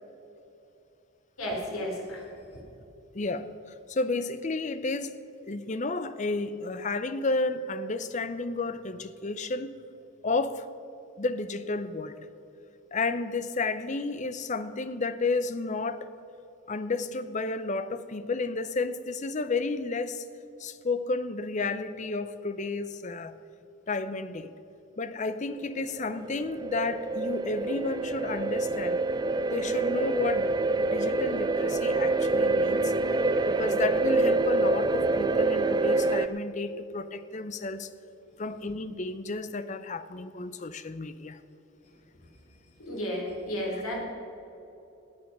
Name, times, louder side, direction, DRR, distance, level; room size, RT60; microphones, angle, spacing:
voice 1, 1.4-2.2 42.8-44.0, equal, 85° left, -1 dB, 3.7 m, -33 dB
voice 2, 3.1-3.5 3.9-5.2 5.5-9.8 10.2-10.7 11.2-12.2 12.9-16.1 16.7-20.3 20.6-23.4 23.9-24.5 25.0-29.0 29.5-33.0 33.5-37.9 38.4-41.4, left 3 dB, 35° left, 13 dB, 0.6 m, -32 dB
sound 1, 25.5-36.3, right 3 dB, 20° right, 0.3 m, -26 dB
18.0 x 8.8 x 6.1 m, 2.9 s
head